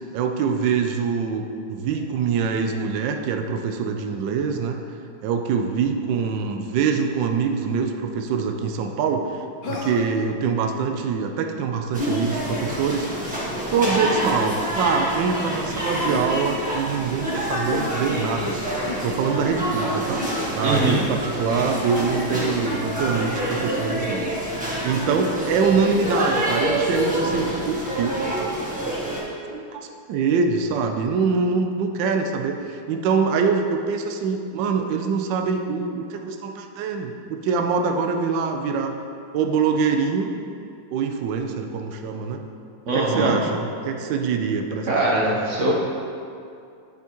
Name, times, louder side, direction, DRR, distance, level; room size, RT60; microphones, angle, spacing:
voice 1, 0.1-4.7 5.2-13.3 13.7-18.6 19.0-20.2 20.5-24.2 24.8-28.4 29.5-39.0 39.3-40.3 40.9-42.5 42.9-45.6, right 5 dB, 75° right, 4 dB, 1.0 m, -24 dB
Human voice, 9.6-10.2 11.9-12.2 13.7-14.1 15.7-16.3 17.7-17.9 18.8-19.1 20.2-20.8 22.4-22.7, left 3 dB, 70° left, 1.6 m, -31 dB
sound 1, 11.9-29.2, right 1 dB, 5° right, 1.2 m, -27 dB
voice 2, 20.6-21.0 42.9-43.4 44.9-45.8, right 2 dB, 45° right, -4 dB, 1.0 m, -21 dB
9.6 x 5.8 x 3.0 m, 2.5 s
omnidirectional pair, 2.4 m